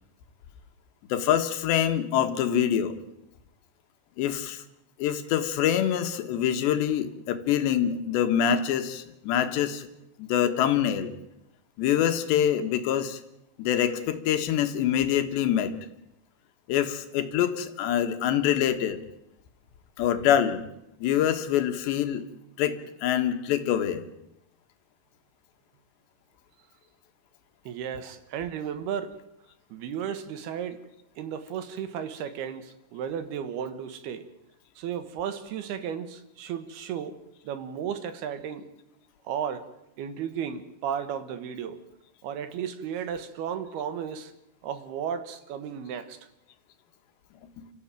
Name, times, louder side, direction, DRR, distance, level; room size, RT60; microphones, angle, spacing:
voice 1, 1.1-3.0 4.2-4.6 5.0-9.9 10.2-11.1 11.8-13.2 13.6-15.7 16.7-19.0 20.0-20.6 21.0-22.2 22.6-24.0, left 10 dB, 85° left, 8 dB, 3.7 m, -25 dB
voice 2, 27.6-29.2 29.7-30.8 31.2-34.3 34.8-38.7 39.2-39.7 40.0-41.8 42.2-44.3 44.6-46.2, right 8 dB, 70° right, 11 dB, 3.2 m, -34 dB
29.5 x 14.0 x 9.0 m, 0.86 s
omnidirectional pair, 4.9 m